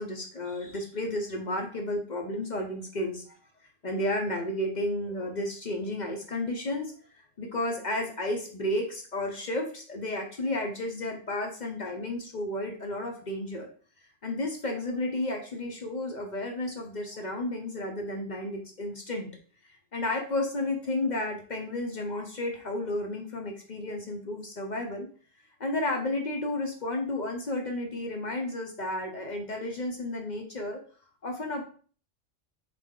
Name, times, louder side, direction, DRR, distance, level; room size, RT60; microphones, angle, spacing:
voice 1, 0.0-3.4 3.8-13.7 14.2-19.3 19.6-25.1 25.6-30.8 31.2-31.6, left 1 dB, 45° left, 2 dB, 0.7 m, -32 dB
4.1 x 3.3 x 3.7 m, 0.42 s
omnidirectional pair, 1.3 m